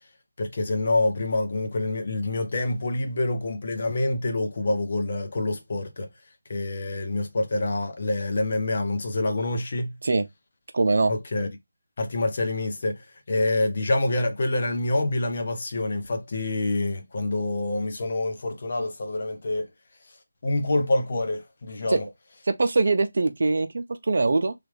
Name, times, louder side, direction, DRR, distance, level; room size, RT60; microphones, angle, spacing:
voice 1, 0.4-6.1 6.5-10.0 11.1-11.5 12.0-19.7 20.4-22.0, left 2 dB, 40° left, 0.7 m, -26 dB
voice 2, 10.7-11.1 21.9-22.0 22.4-24.5, right 3 dB, 50° right, 0.5 m, -22 dB
3.2 x 2.3 x 3.1 m
figure-of-eight pair, 170°, 0 cm